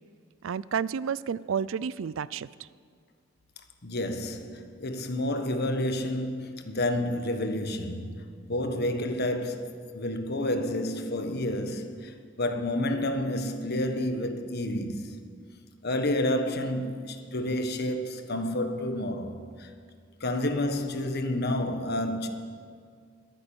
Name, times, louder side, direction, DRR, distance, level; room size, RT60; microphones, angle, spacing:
voice 1, 0.4-2.7, right 7 dB, 75° right, 0.4 m, -31 dB
voice 2, 3.8-15.2 15.8-19.7 20.2-22.3, left 1 dB, 55° left, 1.3 m, -30 dB
21.5 x 9.4 x 7.1 m
head